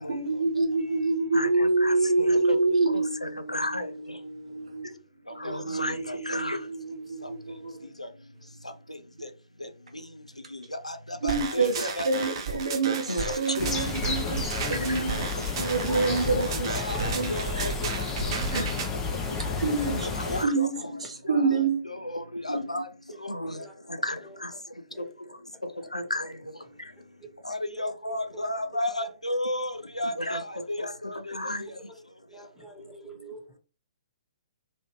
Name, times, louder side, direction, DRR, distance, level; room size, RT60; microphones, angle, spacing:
voice 1, 0.1-4.9 5.3-7.9 11.2-16.7 17.0-17.7 18.2-18.7 19.4-20.1 20.4-20.7 21.0-21.8, right 3 dB, 70° right, 1.2 m, -27 dB
voice 2, 1.3-2.6 2.9-3.9 5.4-6.6 10.5-11.0 11.2-12.6 13.1-13.8 15.0-15.1 16.1-17.7 18.5-18.6 19.9-21.0 21.3-21.5 21.8-22.8 23.2-23.6 24.0-24.5 25.9-26.3 27.4-31.7, left 1 dB, 90° left, 0.5 m, -32 dB
sound 1, 11.3-18.9, right 6 dB, 40° right, 0.7 m, -34 dB
sound 2, 13.6-20.4, left 5 dB, 15° left, 0.6 m, -31 dB
voice 3, 27.7-28.4 29.0-29.1 31.9-32.0 32.3-33.6, right 3 dB, 5° right, 1.1 m, -46 dB
3.1 x 2.9 x 3.0 m
figure-of-eight pair, 120°, 3 cm